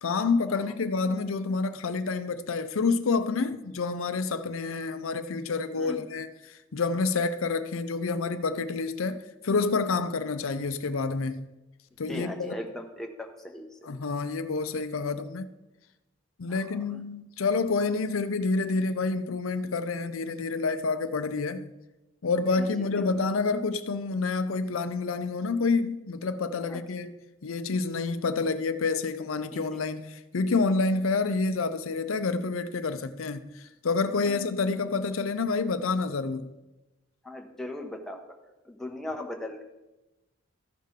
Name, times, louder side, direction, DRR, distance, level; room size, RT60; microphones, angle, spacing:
voice 1, 0.0-6.3 6.7-11.5 12.0-12.5 13.8-15.5 16.4-21.7 22.2-27.1 27.4-33.5 33.8-36.5, left 4 dB, 85° left, 0.6 m, -28 dB
voice 2, 5.8-6.1 12.1-13.7 16.5-16.8 22.6-23.1 26.5-26.8 34.2-34.4 37.2-38.2 38.6-39.6, left 1 dB, ahead, 0.8 m, -38 dB
14.5 x 5.7 x 3.7 m
head